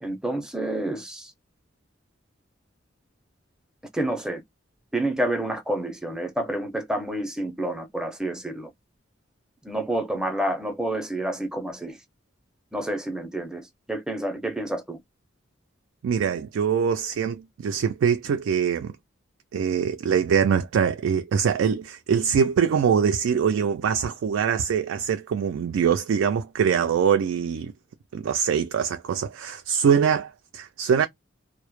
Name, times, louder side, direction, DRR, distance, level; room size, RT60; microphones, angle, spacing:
voice 1, 0.0-1.3 3.9-4.4 4.9-8.7 9.6-12.0 12.7-13.6 13.9-15.0, right 1 dB, 5° right, 0.4 m, -29 dB
voice 2, 16.0-18.9 19.5-27.7 28.1-31.1, right 7 dB, 80° right, 0.3 m, -23 dB
2.0 x 2.0 x 3.0 m
head